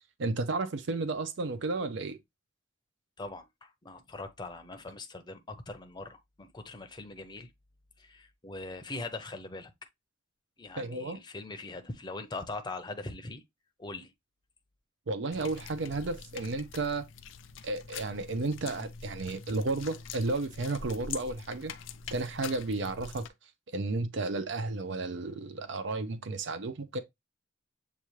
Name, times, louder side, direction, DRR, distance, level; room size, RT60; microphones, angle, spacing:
voice 1, 0.2-2.2 10.8-11.2 15.1-17.1 17.6-21.7 22.1-23.3 23.7-27.0, right 3 dB, 65° right, 0.5 m, -33 dB
voice 2, 3.2-7.5 8.0-9.7 10.6-13.4 13.8-14.1, left 2 dB, 25° left, 0.6 m, -41 dB
sound 1, 15.3-23.3, left 6 dB, 75° left, 0.4 m, -44 dB
6.9 x 2.4 x 3.1 m
head